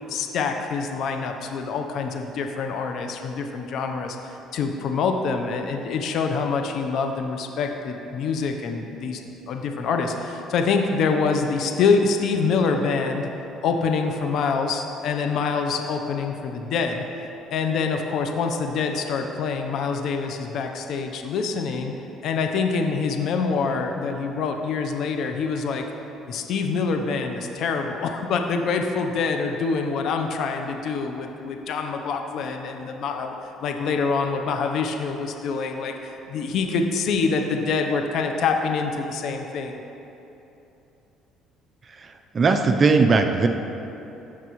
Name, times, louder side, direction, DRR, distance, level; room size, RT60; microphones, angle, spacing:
voice 1, 0.1-9.2 9.5-13.3 13.6-17.0 17.5-21.9 22.2-25.8 26.3-33.3 33.6-39.8, left 5 dB, 65° left, 4 dB, 0.7 m, -25 dB
voice 2, 41.9-43.5, right 4 dB, 40° right, 6 dB, 0.6 m, -19 dB
15.0 x 6.0 x 3.1 m, 2.9 s
supercardioid pair, 85°, 0 cm